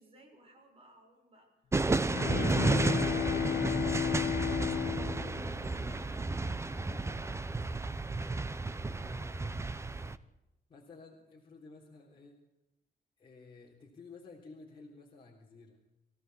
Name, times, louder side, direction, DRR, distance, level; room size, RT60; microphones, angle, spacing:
voice 1, 0.0-1.5 8.1-8.5, right 1 dB, 40° right, 2 dB, 7.1 m, -61 dB
sound 1, 1.7-10.2, right 3 dB, 15° right, 0.9 m, -32 dB
Bowed string instrument, 2.1-6.4, left 10 dB, 90° left, 0.7 m, -34 dB
voice 2, 5.1-6.4 6.8-7.6 8.8-9.6 9.9-10.1 10.7-12.4 13.2-15.8, left 3 dB, 35° left, -2 dB, 3.7 m, -54 dB
25.0 x 15.5 x 8.1 m, 0.93 s
wide cardioid pair, 165°, 15 cm